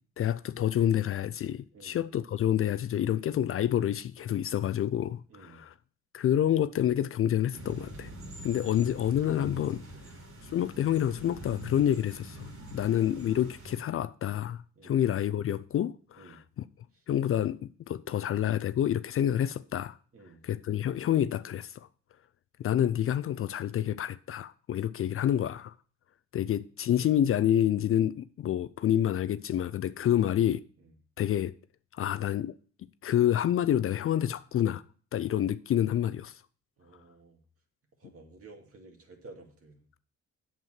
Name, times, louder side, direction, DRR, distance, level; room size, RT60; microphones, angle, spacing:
voice 1, 0.2-5.7 6.1-8.1 8.4-9.8 10.5-12.4 12.7-16.4 17.1-17.6 17.9-20.0 20.4-21.9 22.6-25.7 26.3-30.6 31.2-31.5 32.0-32.5 33.0-34.8 35.1-36.3, left 11 dB, 45° left, 0.4 m, -28 dB
voice 2, 5.3-5.6 8.4-8.5 9.9-10.2 12.7-12.9 14.8-15.0 16.2-16.4 16.9-17.0 20.1-20.4 30.1-30.2 30.8-31.0 36.8-37.4 38.0-39.8, right 3 dB, 50° right, 2.3 m, -53 dB
sound 1, 7.5-13.8, equal, 65° right, 4.8 m, -44 dB
8.2 x 7.4 x 4.4 m
cardioid pair, 90°, 30 cm